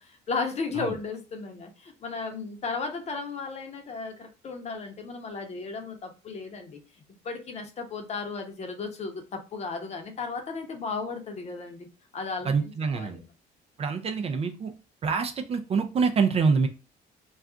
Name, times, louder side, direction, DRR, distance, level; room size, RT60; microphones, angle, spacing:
voice 1, 0.0-6.8 7.2-11.9 12.1-13.3, left 4 dB, 40° left, 0.7 m, -35 dB
voice 2, 12.4-13.2 13.8-14.7 15.0-16.7, right 5 dB, 35° right, 0.4 m, -26 dB
2.3 x 2.3 x 3.7 m
cardioid pair, 110°, 17 cm